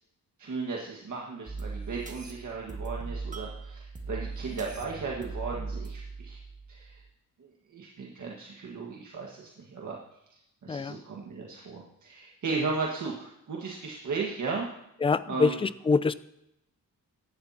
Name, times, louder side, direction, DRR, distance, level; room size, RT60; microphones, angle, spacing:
voice 1, 0.4-6.4 6.7-7.0 7.4-10.0 10.6-14.7 15.3-15.6, right 4 dB, 60° right, -2 dB, 1.7 m, -35 dB
sound 1, 1.5-7.1, right 4 dB, 20° right, 1.4 m, -39 dB
voice 2, 10.7-11.0 15.0-16.1, left 4 dB, 15° left, 16 dB, 0.3 m, -25 dB
17.0 x 11.5 x 2.9 m, 0.81 s
wide cardioid pair, 140°, 34 cm